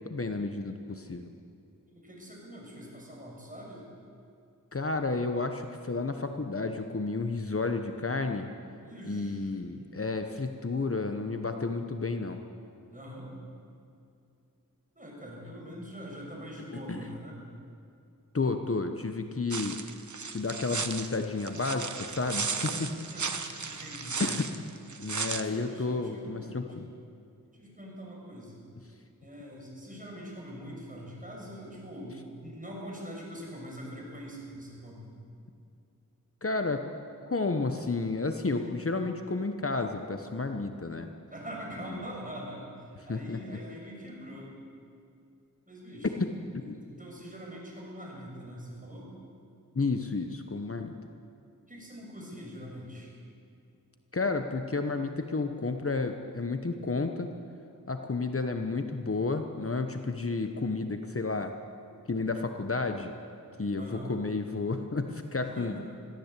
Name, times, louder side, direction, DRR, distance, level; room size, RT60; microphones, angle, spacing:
voice 1, 0.0-1.3 4.7-8.5 9.0-12.4 16.9-17.1 18.3-19.8 20.3-22.9 24.2-24.5 25.0-26.9 36.4-36.9 37.2-41.1 41.9-42.1 43.1-43.4 46.2-46.6 49.7-51.0 54.1-57.3 57.9-61.5 62.1-63.1 63.6-65.7, left 3 dB, 40° left, 6 dB, 1.1 m, -31 dB
voice 2, 1.9-3.8 8.8-9.4 12.9-13.3 14.9-17.4 22.6-22.7 23.1-23.3 23.6-24.2 25.3-26.7 27.5-28.7 29.2-35.1 41.3-44.6 45.7-49.1 51.7-53.1 63.7-64.1 65.3-65.8, equal, 25° right, -3 dB, 6.6 m, -43 dB
sound 1, 19.5-25.4, right 5 dB, 60° right, 1.1 m, -35 dB
21.0 x 15.5 x 8.4 m, 2.5 s
wide cardioid pair, 70°, 33 cm